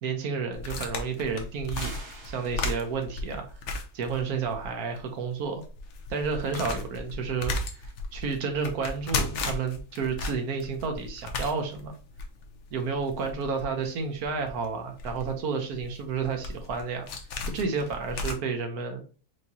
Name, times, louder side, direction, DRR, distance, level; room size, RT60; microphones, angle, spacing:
voice 1, 0.0-1.9 2.2-3.4 3.9-5.6 6.1-7.5 7.8-11.9 12.7-17.1 17.5-19.0, right 5 dB, 70° right, 4 dB, 1.2 m, -31 dB
sound 1, 0.5-4.7 5.0-5.1 5.5-18.3, left 3 dB, 55° left, 0.9 m, -35 dB
sound 2, 1.8-3.1, right 2 dB, 30° right, 1.1 m, -45 dB
4.8 x 2.8 x 2.7 m, 0.38 s
omnidirectional pair, 1.7 m